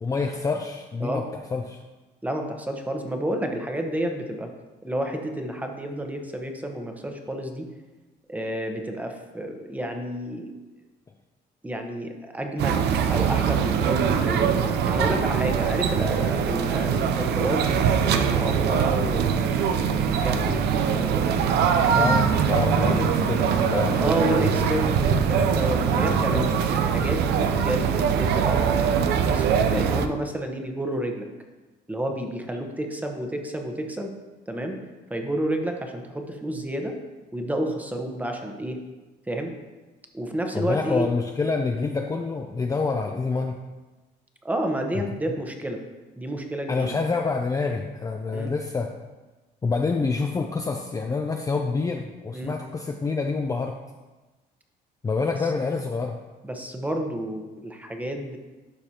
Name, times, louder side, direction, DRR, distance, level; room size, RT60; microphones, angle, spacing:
voice 1, 0.0-1.2 1.5-1.8 21.9-24.6 26.3-26.5 40.5-43.6 46.7-48.9 49.6-53.7 55.0-56.2, left 4 dB, 20° left, 3 dB, 0.5 m, -27 dB
voice 2, 2.2-4.5 4.8-7.7 8.3-10.5 11.6-21.3 24.0-31.3 31.9-34.1 34.5-34.8 35.1-37.0 37.3-38.8 39.3-39.5 40.1-41.1 41.8-41.9 44.4-45.8 46.1-47.0 48.3-48.5 52.3-52.5 55.4-55.5 56.4-58.4, right 1 dB, 10° right, 4 dB, 0.9 m, -30 dB
sound 1, 12.6-30.1, right 7 dB, 75° right, 0.5 m, -22 dB
12.0 x 4.8 x 2.9 m, 1.2 s
cardioid pair, 110°, 17 cm